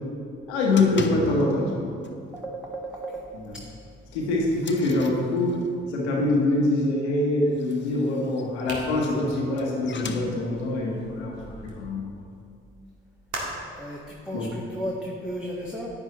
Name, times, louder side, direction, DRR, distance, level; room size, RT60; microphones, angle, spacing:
voice 1, 0.5-1.9 3.3-3.6 4.1-5.6 5.9-12.1 14.3-14.5, left 2 dB, 85° left, -2 dB, 1.3 m, -24 dB
sound 1, 0.7-1.8 2.0-2.4 2.7-2.8 3.2-3.3 4.0-5.9 7.4-10.8, left 5 dB, 35° left, 0.8 m, -38 dB
voice 2, 2.3-3.2 13.7-15.9, equal, 5° right, -3 dB, 1.4 m, -34 dB
sound 2, 8.6-11.9 13.3-13.8, right 2 dB, 60° right, 2.0 m, -39 dB
9.7 x 9.3 x 3.0 m, 2.4 s
hypercardioid pair, 40°, 32 cm